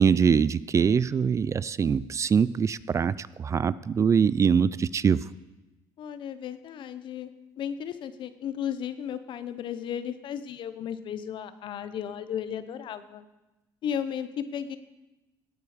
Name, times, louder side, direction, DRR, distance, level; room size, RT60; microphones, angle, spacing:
voice 1, 0.0-5.2, right 6 dB, 35° right, 19 dB, 0.4 m, -23 dB
voice 2, 6.0-7.3 7.6-13.3 13.8-14.8, left 9 dB, 60° left, 12 dB, 1.0 m, -34 dB
18.0 x 8.7 x 5.0 m, 1.0 s
cardioid pair, 95°, 9 cm